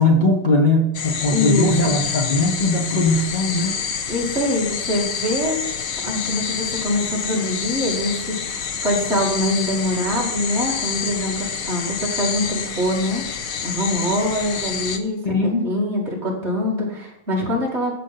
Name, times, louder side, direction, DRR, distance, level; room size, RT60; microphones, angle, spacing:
voice 1, 0.0-3.8 15.2-15.6, left 2 dB, 25° left, 0 dB, 1.5 m, -19 dB
sound 1, 0.9-15.0, left 7 dB, 60° left, 0.9 m, -28 dB
voice 2, 1.3-1.9 4.1-5.6 6.0-13.2 13.6-18.0, left 1 dB, 30° right, -3 dB, 2.7 m, -24 dB
15.0 x 5.2 x 4.3 m, 0.90 s
omnidirectional pair, 2.4 m